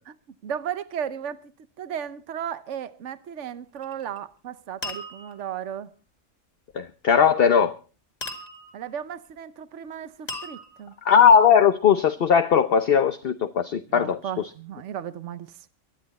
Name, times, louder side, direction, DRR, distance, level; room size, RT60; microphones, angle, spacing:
voice 1, 0.4-1.5 1.8-5.9 8.7-10.9 13.9-15.7, right 9 dB, 70° right, 1.2 m, -35 dB
sound 1, 3.8-4.2 4.8-5.5 8.2-8.9 10.3-11.1, left 1 dB, 30° left, 2.1 m, -37 dB
voice 2, 6.7-7.8 11.0-14.5, left 7 dB, 50° left, 1.0 m, -19 dB
24.5 x 10.5 x 4.2 m
omnidirectional pair, 1.3 m